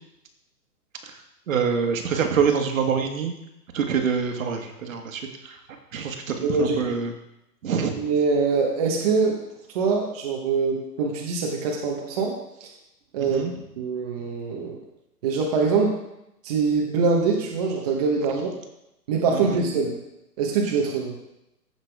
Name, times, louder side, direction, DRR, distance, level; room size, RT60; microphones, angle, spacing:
voice 1, 1.5-3.3 3.7-5.6 5.9-7.1 7.6-8.0 13.2-13.5 19.3-19.6, right 6 dB, 55° right, 4 dB, 1.7 m, -25 dB
voice 2, 6.4-6.8 8.0-9.4 9.7-12.3 12.6-12.7 13.1-13.4 13.8-14.8 15.2-15.9 16.4-18.5 19.1-20.0 20.4-21.1, right 4 dB, 25° right, -1 dB, 1.0 m, -23 dB
15.0 x 5.9 x 3.4 m, 0.86 s
hypercardioid pair, 160°, 48 cm